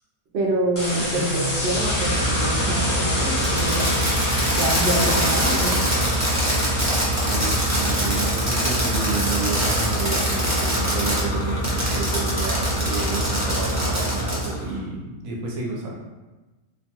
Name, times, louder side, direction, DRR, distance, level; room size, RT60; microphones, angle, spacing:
voice 1, 0.3-4.3 4.5-6.1, right 1 dB, 60° right, -3 dB, 0.7 m, -26 dB
sound 1, 0.8-9.0, left 1 dB, 20° left, 0.6 m, -28 dB
sound 2, 1.4-14.8, right 1 dB, 65° left, 0.8 m, -26 dB
Fireworks, 3.4-11.2 11.6-14.5, equal, 30° right, 0.3 m, -25 dB
voice 2, 7.3-15.9, right 3 dB, 80° right, -3 dB, 1.0 m, -30 dB
2.7 x 2.3 x 2.8 m, 1.2 s
omnidirectional pair, 1.5 m